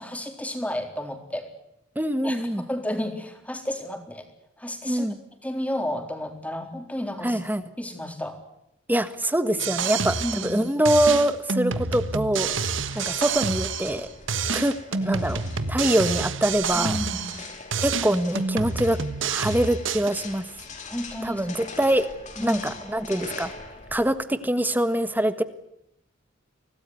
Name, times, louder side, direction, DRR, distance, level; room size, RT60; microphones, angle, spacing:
voice 1, 0.0-1.5 2.2-4.3 4.6-5.1 5.4-7.4 7.8-8.4 10.2-10.6 16.7-17.3 20.9-21.5 22.4-22.7, left 1 dB, 5° left, 5 dB, 4.0 m, -32 dB
voice 2, 1.9-2.6 4.9-5.2 7.2-7.6 8.9-12.6 12.9-14.1 14.5-15.4 15.7-17.0 17.8-19.0 19.2-20.5 21.2-22.1 22.4-23.5 23.9-25.4, right 1 dB, 10° right, 11 dB, 1.5 m, -24 dB
sound 1, 9.6-10.6 10.9-14.0 14.3-17.5 17.7-20.1, right 5 dB, 70° right, 1.4 m, -28 dB
sound 2, 12.3-24.2, left 4 dB, 40° left, 4.5 m, -42 dB
25.0 x 18.0 x 9.5 m, 0.81 s
head